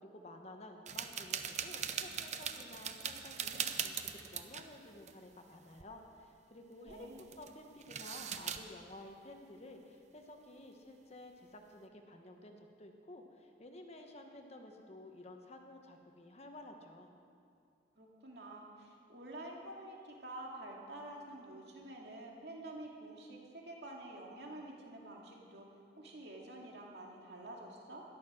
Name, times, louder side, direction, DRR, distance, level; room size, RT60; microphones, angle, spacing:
voice 1, 0.0-7.1 7.4-17.1, left 1 dB, 35° left, 4 dB, 1.1 m, -53 dB
sound 1, 0.9-4.7 5.0-5.1 5.5-5.8 6.9-7.5 7.8-8.6, right 8 dB, 40° right, 0.7 m, -40 dB
voice 2, 6.8-7.3 18.0-28.0, right 1 dB, 65° right, -1 dB, 2.3 m, -49 dB
13.5 x 12.0 x 6.3 m, 2.5 s
head